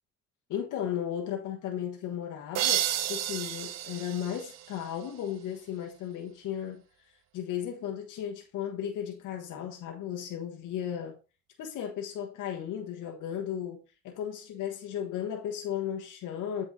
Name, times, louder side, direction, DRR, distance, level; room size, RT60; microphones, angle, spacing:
voice 1, 0.5-6.8 7.3-11.2 11.6-16.6, left 9 dB, 85° left, 1.3 m, -35 dB
sound 1, 2.5-5.3, right 11 dB, 60° right, 0.7 m, -32 dB
8.4 x 4.4 x 3.9 m
cardioid pair, 90°, 30 cm